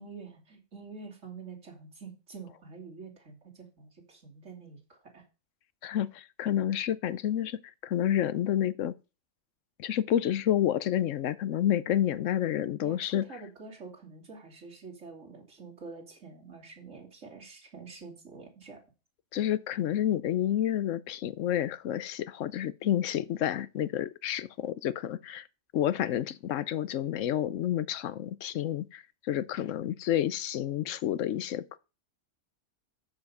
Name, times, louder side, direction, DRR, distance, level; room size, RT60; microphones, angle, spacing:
voice 1, 0.0-5.2 12.8-18.8, right 4 dB, 75° right, 3.3 m, -47 dB
voice 2, 5.8-8.9 9.8-13.2 19.3-25.5 25.7-31.8, left 11 dB, 85° left, 1.0 m, -29 dB
7.9 x 7.1 x 5.4 m
omnidirectional pair, 1.3 m